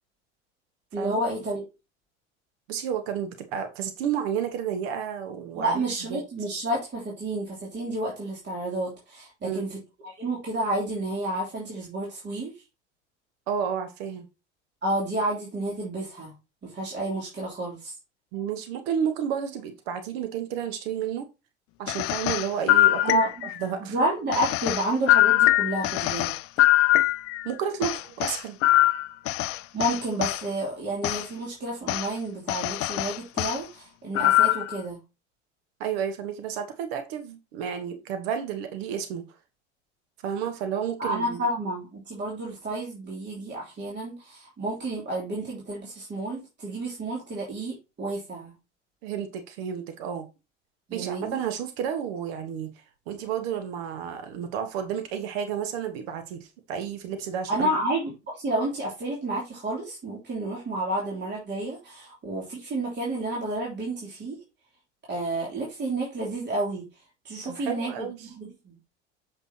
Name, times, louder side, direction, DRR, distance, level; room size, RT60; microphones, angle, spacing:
voice 1, 0.9-1.6 5.5-9.8 10.0-12.5 14.8-16.3 16.6-17.9 23.0-23.4 23.8-26.4 29.7-35.0 41.0-48.5 50.9-51.4 57.5-64.4 65.1-66.8 67.2-68.8, right 1 dB, 30° right, 3.2 m, -30 dB
voice 2, 2.7-6.2 9.4-9.6 13.5-14.3 18.3-21.3 21.8-23.2 23.6-23.9 27.4-28.6 35.8-39.2 40.2-41.4 49.0-50.3 50.9-52.7 53.1-57.7 67.4-68.3, right 8 dB, 60° right, 1.3 m, -31 dB
sound 1, 21.9-23.6 24.3-27.5 27.8-30.4 31.0-31.2 31.9-32.1 32.5-33.6 34.1-34.8, left 16 dB, 40° left, 0.5 m, -22 dB
8.2 x 6.1 x 2.9 m
figure-of-eight pair, 75°, 35 cm